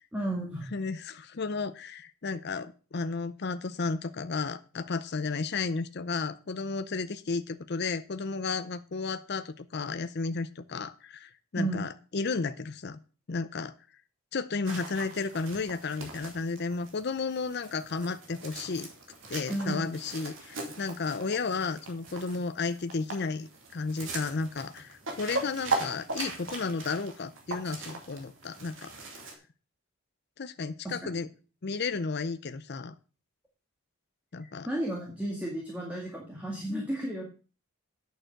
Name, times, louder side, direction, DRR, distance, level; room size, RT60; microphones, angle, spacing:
voice 1, 0.1-0.7 11.6-11.8 19.5-20.1 30.8-31.1 34.7-37.2, right 1 dB, 5° right, -1 dB, 1.9 m, -33 dB
voice 2, 0.7-13.0 13.3-13.8 14.3-18.9 19.3-28.9 30.4-31.3 31.6-32.9 34.3-34.7, left 4 dB, 50° left, 12 dB, 0.5 m, -33 dB
sound 1, 14.6-29.3, right 3 dB, 60° right, 2.7 m, -39 dB
8.9 x 6.9 x 6.4 m, 0.36 s
head